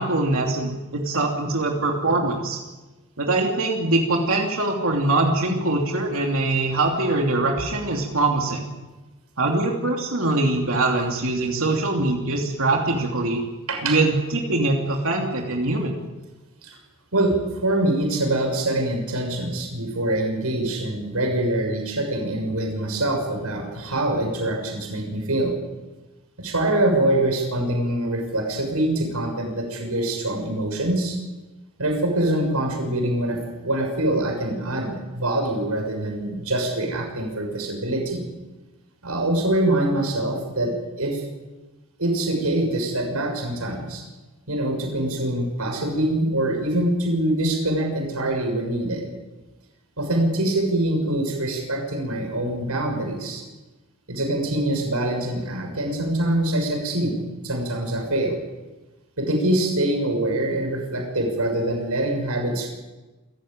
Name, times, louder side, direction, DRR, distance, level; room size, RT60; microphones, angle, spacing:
voice 1, 0.0-2.6 3.2-8.7 9.4-13.4 13.8-16.0, right 2 dB, 70° right, 0 dB, 3.0 m, -23 dB
voice 2, 17.1-25.5 26.4-31.2 31.8-38.2 39.0-41.2 42.0-44.0 44.5-49.0 50.0-53.4 54.1-57.2 57.4-58.3 59.2-62.7, right 1 dB, 90° right, 3 dB, 6.5 m, -24 dB
27.5 x 15.0 x 8.9 m, 1.2 s
head